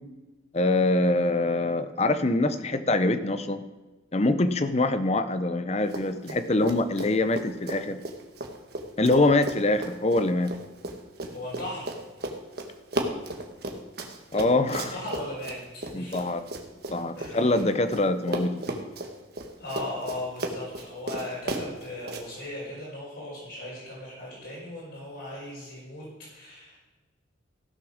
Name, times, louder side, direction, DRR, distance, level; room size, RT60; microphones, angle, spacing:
voice 1, 0.5-3.6 4.1-8.0 9.0-10.5 14.3-15.0 15.9-16.4 16.9-18.7, left 2 dB, 35° left, 11 dB, 0.7 m, -24 dB
Run, 5.8-6.4 6.6-18.0 18.3-22.2, right 1 dB, 55° right, 1.5 m, -35 dB
voice 2, 11.3-11.9 14.7-15.6 15.9-16.2 17.2-17.6 19.6-26.0 26.3-26.8, left 1 dB, 65° left, -8 dB, 5.1 m, -37 dB
15.5 x 6.7 x 6.3 m, 1.2 s
head